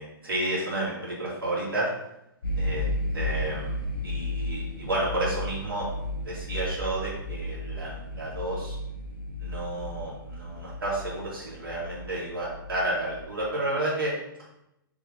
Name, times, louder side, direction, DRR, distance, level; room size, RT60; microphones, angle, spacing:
voice 1, 0.0-1.9 2.6-2.9 3.1-3.7 4.0-5.9 6.2-8.7 9.4-14.1, right 1 dB, 75° right, -6 dB, 2.3 m, -31 dB
sound 1, 2.4-13.4, left 1 dB, 65° left, 1.6 m, -34 dB
6.4 x 5.9 x 2.7 m, 0.83 s
figure-of-eight pair, 115°, 12 cm